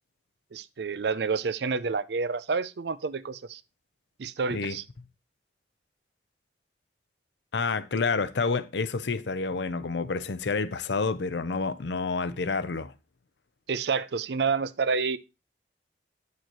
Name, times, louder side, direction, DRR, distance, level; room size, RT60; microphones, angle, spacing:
voice 1, 0.5-3.6 4.2-4.8 13.7-15.2, right 5 dB, 70° right, 0.5 m, -29 dB
voice 2, 7.5-12.9, left 4 dB, 80° left, 0.6 m, -29 dB
9.4 x 6.7 x 3.0 m
head